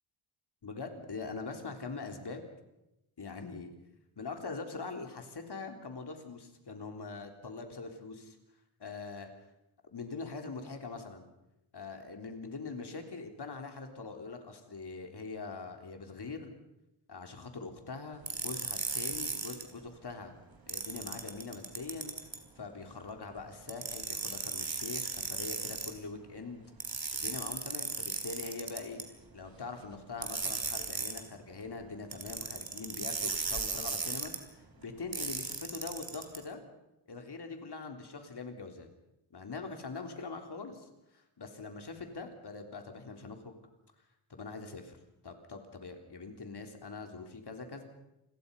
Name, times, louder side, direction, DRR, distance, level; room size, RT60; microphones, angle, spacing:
voice 1, 0.6-2.5 3.2-3.7 4.2-8.4 8.8-9.3 9.9-11.3 11.7-16.5 17.1-20.3 20.7-22.2 22.6-26.6 27.1-36.6 37.1-38.9 39.3-43.6 44.3-45.0 45.2-47.8, left 4 dB, 50° left, 5 dB, 3.7 m, -43 dB
sound 1, 18.3-19.6 20.7-22.4 23.7-25.9 26.8-29.0 30.2-31.2 32.1-34.4 35.1-36.4, right 4 dB, 45° right, 3.8 m, -36 dB
29.5 x 21.5 x 5.5 m, 0.91 s
wide cardioid pair, 105°, 49 cm